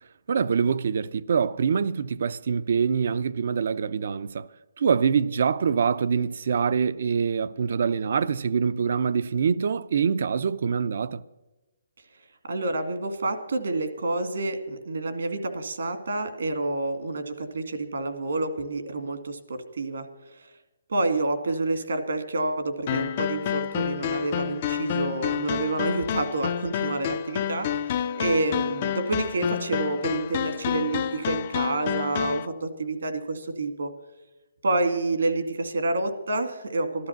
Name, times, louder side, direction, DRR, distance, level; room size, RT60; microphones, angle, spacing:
voice 1, 0.3-4.5 4.8-11.2, right 6 dB, 50° right, 0.6 m, -25 dB
voice 2, 12.5-20.1 20.9-27.7 28.1-33.9 34.6-37.1, right 2 dB, 75° right, 2.2 m, -28 dB
sound 1, 22.9-32.5, left 9 dB, 30° left, 0.5 m, -29 dB
13.0 x 13.0 x 5.9 m
hypercardioid pair, 170°, 0 cm